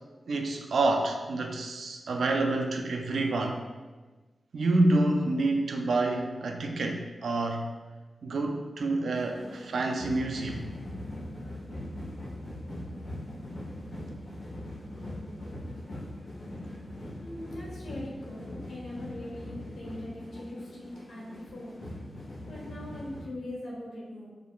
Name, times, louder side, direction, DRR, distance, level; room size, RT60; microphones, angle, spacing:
voice 1, 0.3-3.6 4.5-7.7 8.2-10.6, right 2 dB, 80° right, 3 dB, 0.4 m, -28 dB
sound 1, 9.1-23.3, left 1 dB, 60° left, 1.3 m, -41 dB
voice 2, 17.2-21.7 22.5-24.3, left 1 dB, 90° left, -5 dB, 1.3 m, -41 dB
4.9 x 3.4 x 2.3 m, 1.3 s
wide cardioid pair, 145°, 0 cm